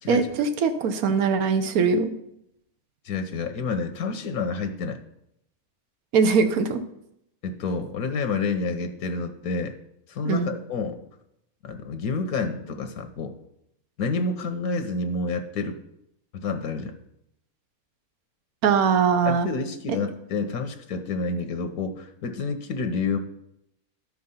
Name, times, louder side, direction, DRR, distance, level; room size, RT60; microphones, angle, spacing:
voice 1, 0.1-2.1 6.1-6.8 10.2-10.5 18.6-19.5, right 5 dB, 80° right, 8 dB, 1.3 m, -21 dB
voice 2, 3.0-5.0 7.4-9.7 10.1-11.0 11.6-13.3 14.0-15.8 16.3-16.9 19.2-23.2, left 4 dB, 85° left, 7 dB, 1.3 m, -29 dB
12.5 x 4.8 x 5.5 m, 0.79 s
omnidirectional pair, 1.5 m